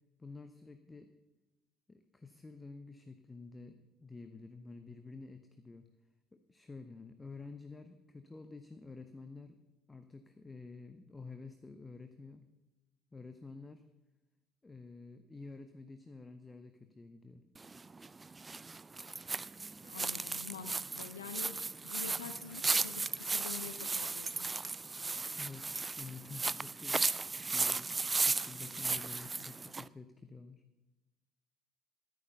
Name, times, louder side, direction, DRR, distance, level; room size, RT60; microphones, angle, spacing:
voice 1, 0.2-1.1 1.9-5.9 6.3-9.6 9.9-12.5 13.1-13.8 14.6-17.4 25.4-27.1 27.5-30.6, left 3 dB, 20° left, 9 dB, 0.8 m, -50 dB
sound 1, 17.6-29.9, right 3 dB, 20° right, 0.3 m, -36 dB
voice 2, 19.8-24.5, left 7 dB, 80° left, 11 dB, 0.5 m, -47 dB
11.0 x 9.7 x 5.4 m, 1.0 s
figure-of-eight pair, 55°, 0 cm